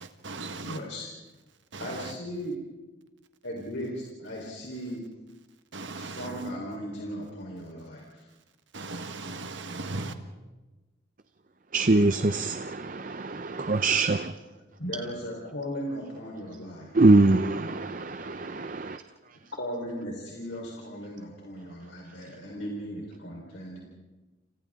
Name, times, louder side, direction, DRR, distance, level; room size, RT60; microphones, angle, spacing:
voice 1, 0.0-0.8 1.7-2.1 5.7-6.4 8.7-10.1, right 3 dB, 70° right, 1.5 m, -37 dB
voice 2, 0.6-1.1 1.8-2.5 3.4-5.0 6.0-8.3 14.8-17.1 19.6-23.8, equal, 70° left, 4.2 m, -37 dB
voice 3, 11.7-14.3 17.0-19.0, right 2 dB, 45° right, 0.7 m, -23 dB
30.0 x 28.0 x 3.8 m
head